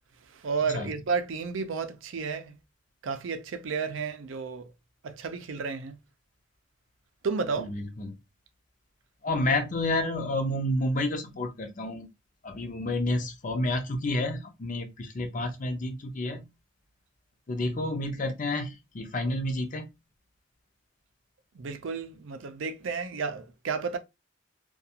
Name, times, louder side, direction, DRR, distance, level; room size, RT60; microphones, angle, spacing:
voice 1, 0.3-2.6 3.0-4.7 5.0-6.0 7.2-7.7 21.5-24.0, right 5 dB, 80° right, 0.5 m, -32 dB
voice 2, 7.6-8.2 9.2-12.1 12.4-16.5 17.5-19.9, left 1 dB, 40° left, 0.5 m, -30 dB
2.4 x 2.3 x 2.8 m
head